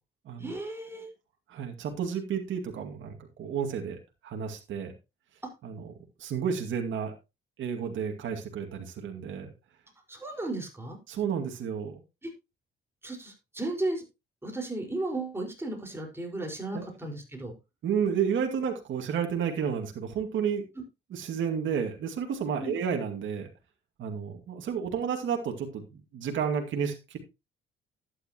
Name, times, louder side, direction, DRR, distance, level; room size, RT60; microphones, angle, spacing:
voice 1, 0.4-1.1 5.4-5.5 10.1-11.0 12.2-12.3 13.0-14.0 14.4-17.5 22.6-22.8, right 2 dB, 10° right, 1 dB, 4.8 m, -34 dB
voice 2, 1.5-4.0 4.2-4.9 5.6-5.9 6.2-7.1 7.6-9.5 11.1-12.0 16.7-16.8 17.8-20.6 21.1-23.5 24.0-27.2, right 7 dB, 75° right, 3 dB, 2.2 m, -31 dB
11.5 x 10.0 x 2.9 m, 0.26 s
cardioid pair, 90°, 20 cm